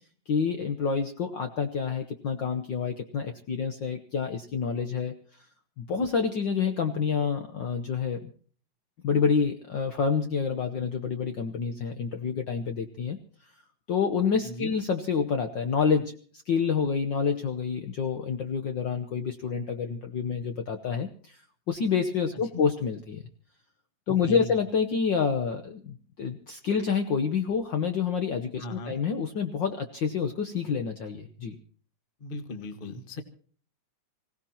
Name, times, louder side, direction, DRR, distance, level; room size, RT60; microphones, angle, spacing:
voice 1, 0.3-5.1 5.8-8.3 9.0-13.2 13.9-16.2 16.5-21.4 21.7-23.2 24.1-31.6, left 6 dB, 85° left, 5 dB, 1.0 m, -28 dB
voice 2, 14.4-14.7 22.5-22.6 24.1-24.5 28.6-29.0 32.2-33.2, left 1 dB, 40° left, 8 dB, 0.7 m, -37 dB
26.0 x 17.0 x 2.9 m, 0.44 s
omnidirectional pair, 3.5 m